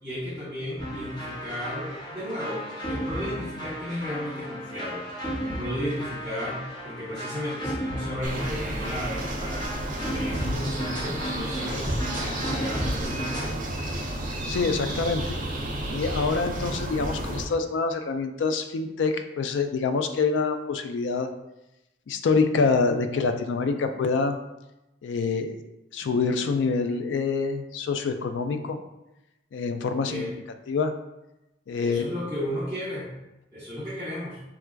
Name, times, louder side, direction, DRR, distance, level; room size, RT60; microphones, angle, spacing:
voice 1, 0.0-5.1 5.4-13.5 30.0-30.3 31.7-33.1 33.5-34.4, equal, 15° right, -10 dB, 0.8 m, -34 dB
sound 1, 0.8-13.5, equal, 25° left, 0.9 m, -34 dB
sound 2, 8.2-17.5, right 1 dB, 45° right, 0.4 m, -32 dB
voice 2, 14.5-15.4 15.9-21.3 22.1-24.4 25.0-25.6 25.9-28.8 29.5-30.3 30.7-30.9 31.7-32.1, left 4 dB, 80° left, 7 dB, 0.3 m, -26 dB
4.4 x 2.4 x 2.2 m, 0.93 s
head